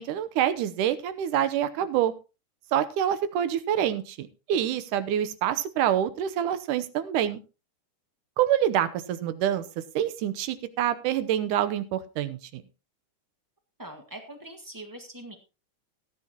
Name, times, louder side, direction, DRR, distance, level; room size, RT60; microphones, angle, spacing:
voice 1, 0.0-2.1 2.7-7.4 8.4-9.7 10.0-12.6, right 10 dB, 80° right, 13 dB, 2.4 m, -26 dB
voice 2, 13.8-15.4, right 1 dB, 15° right, 4 dB, 0.7 m, -42 dB
17.0 x 9.7 x 2.9 m, 0.31 s
omnidirectional pair, 3.6 m